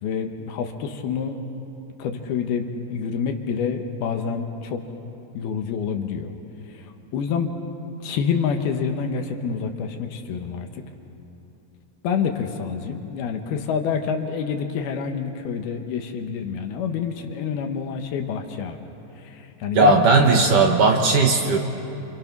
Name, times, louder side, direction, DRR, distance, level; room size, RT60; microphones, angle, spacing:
voice 1, 0.0-1.4 2.0-4.8 5.3-6.3 6.7-6.9 7.1-7.5 8.0-10.8 12.0-18.8 19.2-19.9, left 6 dB, 70° left, 5 dB, 2.9 m, -27 dB
voice 2, 19.7-21.6, right 3 dB, 60° right, 2 dB, 2.4 m, -17 dB
28.0 x 27.5 x 6.0 m, 2.9 s
omnidirectional pair, 4.9 m